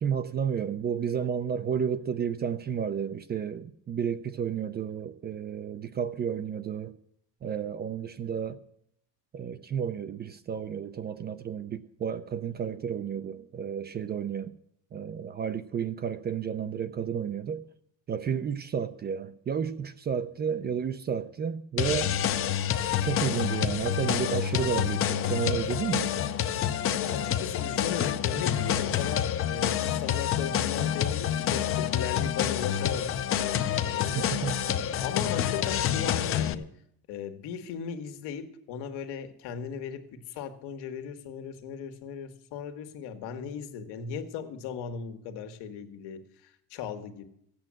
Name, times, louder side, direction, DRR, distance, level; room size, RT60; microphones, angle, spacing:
voice 1, 0.0-7.0 7.4-8.6 9.3-14.5 14.9-17.6 18.1-22.2 23.0-26.1 34.2-34.6, right 7 dB, 25° right, 0.5 m, -31 dB
sound 1, 21.8-36.5, left 10 dB, 35° left, 0.6 m, -28 dB
voice 2, 27.0-34.3 35.0-36.7 37.1-47.2, left 7 dB, 80° left, 1.8 m, -37 dB
15.0 x 8.6 x 7.6 m
cardioid pair, 165°, 39 cm